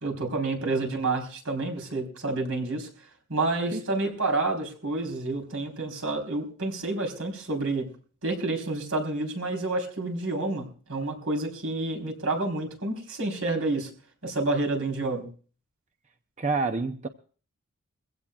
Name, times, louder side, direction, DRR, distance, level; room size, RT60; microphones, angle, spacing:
voice 1, 0.0-2.9 3.3-7.9 8.2-13.9 14.2-15.3, right 2 dB, 75° right, 2 dB, 4.0 m, -29 dB
voice 2, 16.4-17.1, right 3 dB, 35° right, 7 dB, 0.6 m, -28 dB
23.0 x 16.0 x 2.4 m, 0.40 s
head